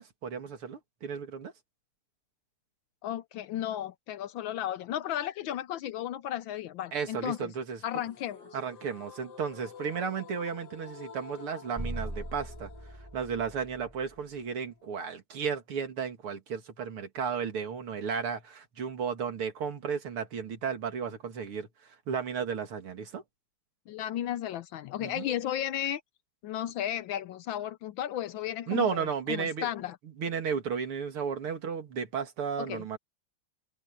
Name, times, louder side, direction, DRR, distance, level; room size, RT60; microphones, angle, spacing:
voice 1, 0.0-1.5 6.9-7.8 8.5-12.7 13.1-21.7 22.1-23.2 25.0-25.3 28.7-29.7 30.2-33.0, right 6 dB, 75° right, 3.0 m, -34 dB
voice 2, 3.0-7.5 7.8-8.5 23.9-26.0 26.4-30.0 32.6-32.8, left 11 dB, 70° left, 1.3 m, -34 dB
sound 1, 8.1-15.1, left 6 dB, 50° left, 2.1 m, -50 dB
sound 2, 11.8-14.2, right 1 dB, 10° right, 5.5 m, -40 dB
omnidirectional pair, 2.4 m